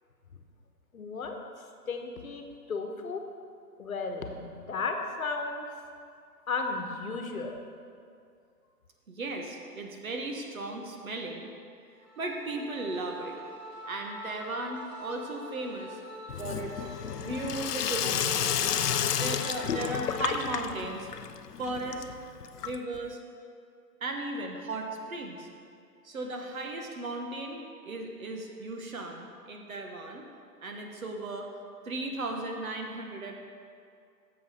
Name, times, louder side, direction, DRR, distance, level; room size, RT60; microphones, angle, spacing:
voice 1, 0.9-1.4 1.9-3.2 3.8-5.7 6.5-7.6, left 4 dB, 60° left, 4 dB, 1.2 m, -34 dB
voice 2, 9.1-11.5 12.2-13.4 13.9-16.0 16.4-16.8 17.1-18.5 19.2-21.1 21.6-22.0 22.6-23.2 24.0-25.5 26.0-30.2 30.6-31.5 31.8-33.3, right 2 dB, 60° right, 2 dB, 1.4 m, -36 dB
sound 1, 11.9-20.8, equal, ahead, 1.9 m, -45 dB
Sink (filling or washing), 16.3-23.1, left 9 dB, 75° left, 0.6 m, -31 dB
11.0 x 7.4 x 4.2 m, 2.3 s
hypercardioid pair, 165°, 48 cm